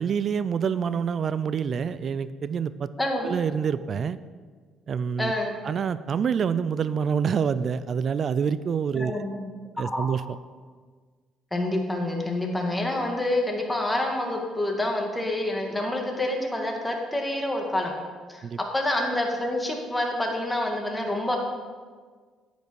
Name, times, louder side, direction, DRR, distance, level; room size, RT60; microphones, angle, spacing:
voice 1, 0.0-2.9 3.2-4.2 4.9-5.3 5.6-9.1 9.8-10.4 18.4-18.6, right 7 dB, 50° right, 15 dB, 0.4 m, -26 dB
voice 2, 3.0-3.3 5.2-5.5 8.9-9.4 9.8-10.1 11.5-17.9 18.3-18.5 18.7-21.4, left 1 dB, 10° left, 1 dB, 2.0 m, -27 dB
9.9 x 9.3 x 4.7 m, 1.5 s
cardioid pair, 95°, 0 cm